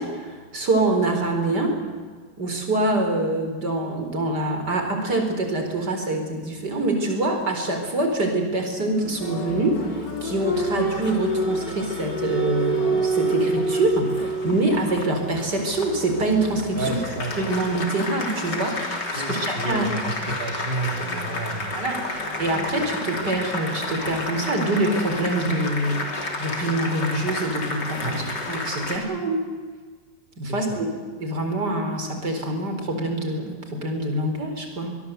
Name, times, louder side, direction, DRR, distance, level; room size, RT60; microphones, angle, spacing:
voice 1, 0.0-1.8 2.4-17.0 17.4-18.8 19.1-19.9 21.7-26.1 26.4-29.4 30.4-30.9 31.2-35.0, right 2 dB, 55° right, 4 dB, 5.0 m, -25 dB
Applause, 9.0-29.0, equal, 60° left, 3.9 m, -29 dB
voice 2, 16.8-17.4 19.1-21.7 28.0-28.1 30.5-30.8, right 2 dB, 30° right, 2 dB, 2.8 m, -30 dB
25.0 x 21.0 x 8.2 m, 1.5 s
omnidirectional pair, 2.1 m